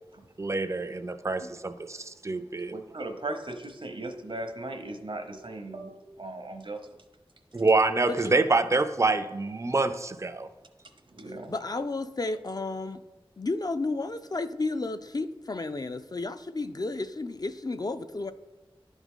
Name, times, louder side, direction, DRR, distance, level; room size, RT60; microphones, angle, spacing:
voice 1, 0.4-2.8 7.5-10.5, right 3 dB, 30° right, 10 dB, 0.4 m, -26 dB
voice 2, 2.7-6.8 11.1-11.5, right 2 dB, 60° right, 5 dB, 0.8 m, -37 dB
voice 3, 11.5-13.0 13.4-18.3, left 3 dB, 40° left, 10 dB, 0.3 m, -32 dB
10.5 x 3.6 x 3.6 m, 1.2 s
wide cardioid pair, 50°, 10 cm